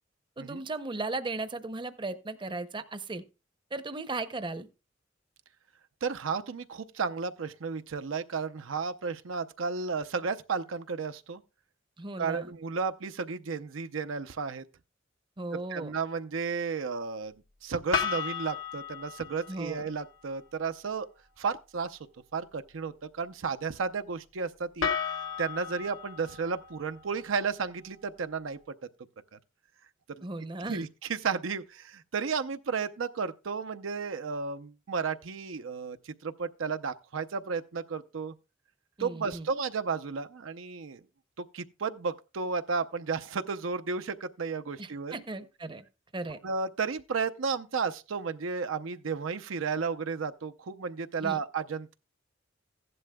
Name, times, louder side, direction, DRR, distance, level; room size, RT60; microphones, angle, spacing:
voice 1, 0.4-3.2 3.7-4.7 12.0-12.5 15.4-15.9 19.5-19.9 30.2-30.8 39.0-39.5 44.8-45.8 46.1-46.4 51.2-51.4, right 2 dB, 25° right, 0.7 m, -36 dB
voice 2, 6.0-11.4 12.2-14.6 15.7-17.3 17.6-21.1 21.4-22.0 22.3-24.9 25.4-28.6 30.2-30.3 30.7-38.3 39.0-41.0 41.4-45.1 46.4-51.9, right 5 dB, 85° right, 0.6 m, -33 dB
sound 1, 17.9-20.0 24.8-28.0, left 6 dB, 85° left, 1.1 m, -35 dB
15.0 x 11.0 x 2.3 m
head